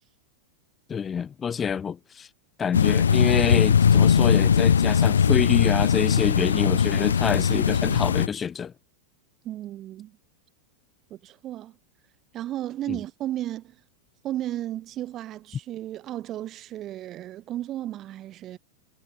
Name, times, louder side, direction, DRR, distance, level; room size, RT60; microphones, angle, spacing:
voice 1, 0.9-2.3 2.6-8.7 12.9-13.0, left 7 dB, 20° left, 1.4 m, -27 dB
sound 1, 2.7-8.3, left 7 dB, 70° left, 0.7 m, -20 dB
voice 2, 9.4-10.2 11.1-11.8 12.3-13.8 14.2-18.6, right 13 dB, 30° right, 1.8 m, -34 dB
figure-of-eight pair, 90°, 0 cm